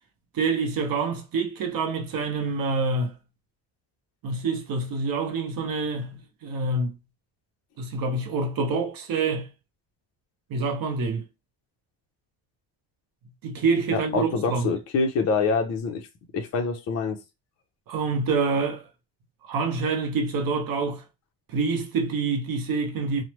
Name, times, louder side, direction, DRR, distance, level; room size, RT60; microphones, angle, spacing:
voice 1, 0.3-3.1 4.2-7.0 7.8-9.5 10.5-11.3 13.4-14.7 17.9-18.8 19.4-21.0 21.5-23.2, right 4 dB, 45° right, 0.6 m, -26 dB
voice 2, 13.9-16.0 16.3-17.2, left 4 dB, 35° left, 0.4 m, -25 dB
3.0 x 2.0 x 2.9 m
cardioid pair, 175°, 48 cm